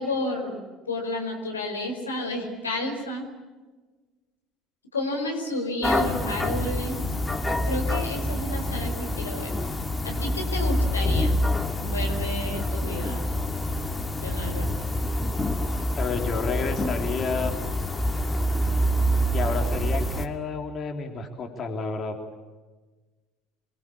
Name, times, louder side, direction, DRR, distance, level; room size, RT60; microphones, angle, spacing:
voice 1, 0.0-3.3 4.9-7.0 7.6-9.5 10.0-11.4 11.8-13.3 14.2-14.7, left 1 dB, 85° left, 3 dB, 4.8 m, -31 dB
sound 1, 5.8-20.3, equal, 15° left, 2.6 m, -26 dB
voice 2, 16.0-17.5 19.3-22.1, left 4 dB, 40° left, 4 dB, 3.6 m, -30 dB
28.0 x 23.5 x 8.7 m, 1.3 s
figure-of-eight pair, 65°, 0 cm